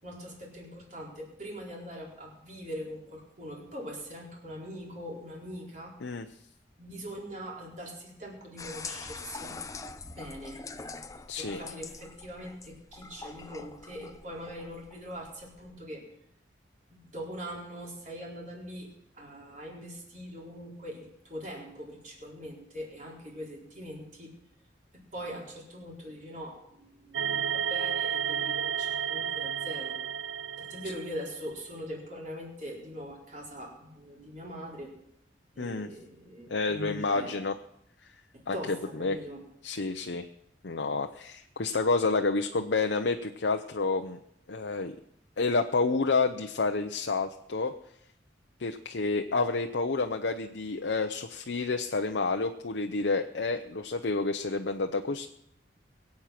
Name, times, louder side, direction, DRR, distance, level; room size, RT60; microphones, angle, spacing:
voice 1, 0.0-6.0 6.8-9.6 10.1-10.6 11.4-16.0 16.9-24.3 25.1-30.0 30.6-34.9 35.5-37.4 38.3-39.4, equal, 40° right, -2 dB, 4.4 m, -42 dB
sound 1, 8.6-15.8, left 4 dB, 15° left, 0.6 m, -44 dB
voice 2, 11.3-11.6 35.6-35.9 36.5-37.6 38.0-38.1 38.5-38.6 38.9-39.2 39.6-40.3 40.6-44.2 44.5-45.0 45.4-47.7 48.6-55.3, left 3 dB, 70° left, 5 dB, 0.7 m, -29 dB
sound 2, 27.1-31.4, right 8 dB, 85° right, 0.5 m, -32 dB
21.5 x 8.6 x 6.0 m, 0.76 s
head